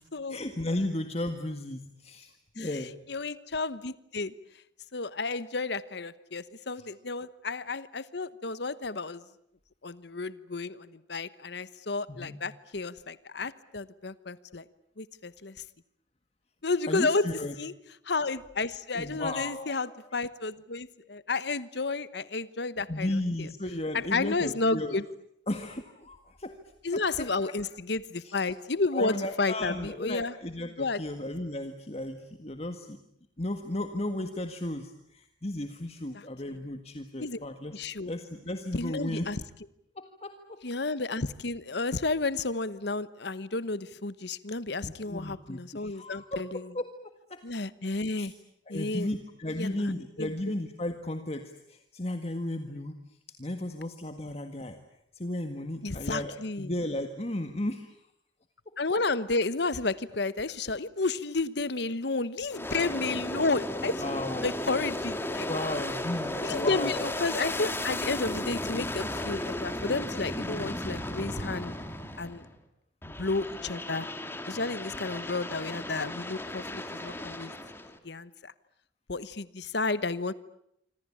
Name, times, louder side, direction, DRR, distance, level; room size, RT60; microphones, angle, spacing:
voice 1, 0.3-3.0 12.1-12.4 16.9-17.5 18.9-19.7 22.9-24.9 25.5-26.6 26.9-27.3 28.2-28.3 28.9-33.0 33.4-37.7 38.0-39.3 40.0-40.6 44.8-46.5 46.7-46.9 47.3-47.4 48.2-48.3 48.7-54.8 55.1-58.0 58.9-59.0 64.0-64.5 65.4-67.0, left 1 dB, 35° left, 7 dB, 1.7 m, -34 dB
voice 2, 2.6-4.3 4.9-9.2 9.8-14.6 15.0-15.6 16.6-17.3 17.6-17.7 18.0-23.5 23.9-25.0 26.8-30.3 30.8-31.0 36.1-36.2 37.2-37.4 37.7-38.1 38.7-39.4 40.6-46.7 47.4-48.3 48.7-49.1 49.6-49.8 50.2-50.3 55.8-56.7 58.8-64.0 64.4-65.5 66.4-71.7 72.2-72.5 73.0-74.1 74.5-77.5 78.0-78.5 79.1-80.3, left 3 dB, 60° left, 16 dB, 1.1 m, -32 dB
Aircraft, 62.5-72.5 73.0-78.0, left 1 dB, 10° left, 2.3 m, -35 dB
26.5 x 26.0 x 8.7 m, 0.77 s
head